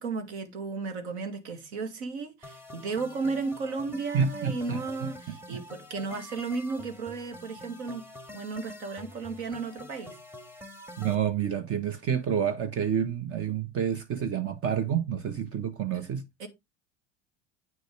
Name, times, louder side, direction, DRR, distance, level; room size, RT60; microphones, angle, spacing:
voice 1, 0.0-8.1 8.3-10.2 15.9-16.1 16.4-16.5, right 4 dB, 70° right, 2.1 m, -34 dB
sound 1, 2.4-11.1, left 1 dB, 5° right, 1.7 m, -46 dB
voice 2, 4.1-5.1 5.5-5.6 11.0-16.2, right 8 dB, 40° right, 1.1 m, -29 dB
9.0 x 6.5 x 3.2 m
hypercardioid pair, 75°, 35 cm